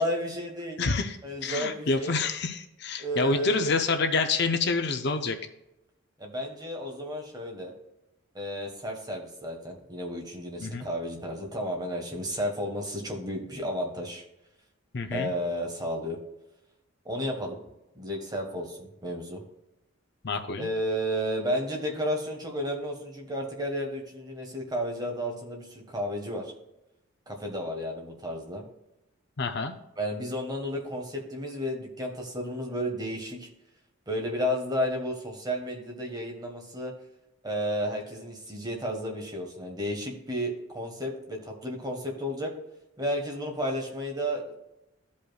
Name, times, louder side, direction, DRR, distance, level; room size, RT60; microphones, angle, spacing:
voice 1, 0.0-0.8 1.2-2.2 3.0-3.7 6.2-7.7 8.3-14.2 15.1-16.2 17.0-17.6 17.9-19.4 20.6-26.5 27.3-28.6 30.0-33.5 34.1-36.9 37.4-42.5 43.0-44.5, equal, 20° right, 1 dB, 1.4 m, -32 dB
voice 2, 0.8-1.2 1.4-5.4 10.6-10.9 14.9-15.3 20.2-20.7 29.4-29.7, left 3 dB, 50° left, 7 dB, 0.6 m, -27 dB
14.0 x 5.3 x 2.3 m, 0.90 s
head